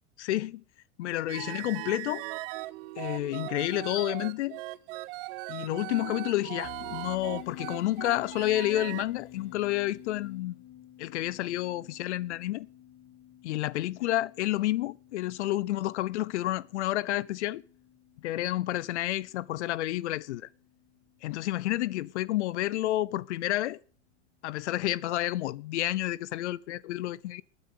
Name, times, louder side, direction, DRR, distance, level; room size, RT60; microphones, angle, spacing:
voice 1, 0.2-0.6 1.0-2.2 3.0-4.6 5.5-10.6 11.0-12.7 13.4-17.6 18.2-20.5 21.2-23.8 24.4-27.4, left 15 dB, 75° left, 0.7 m, -30 dB
sound 1, 1.3-9.0, right 20 dB, 50° right, 0.9 m, -39 dB
sound 2, 6.6-21.7, left 10 dB, 35° left, 2.1 m, -50 dB
12.5 x 9.5 x 8.5 m
supercardioid pair, 135°, 35 cm